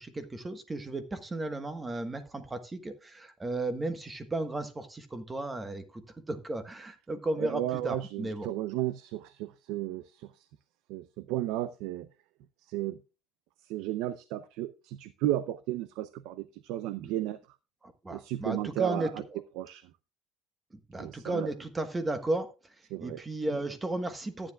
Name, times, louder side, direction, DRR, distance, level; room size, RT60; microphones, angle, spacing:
voice 1, 0.0-8.5 17.8-19.4 20.9-22.7 23.0-24.5, right 2 dB, 15° right, 1.3 m, -34 dB
voice 2, 7.4-10.5 10.9-12.1 12.6-13.0 13.6-17.4 18.1-19.2 19.6-19.8 21.0-21.5 22.9-23.2, right 14 dB, 75° right, 0.6 m, -34 dB
14.0 x 9.9 x 2.4 m
cardioid pair, 145°, 0 cm